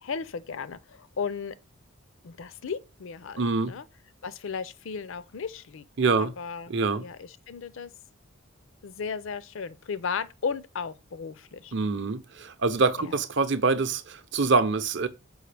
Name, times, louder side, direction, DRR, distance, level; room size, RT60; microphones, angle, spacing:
voice 1, 0.0-1.5 2.2-3.8 4.2-5.9 6.2-6.7 7.0-7.9 8.8-11.7 13.0-13.1, left 5 dB, 70° left, 0.5 m, -35 dB
voice 2, 3.4-3.7 6.0-6.3 6.7-7.0 11.7-15.1, right 4 dB, 55° right, 0.6 m, -25 dB
6.3 x 5.0 x 3.4 m
head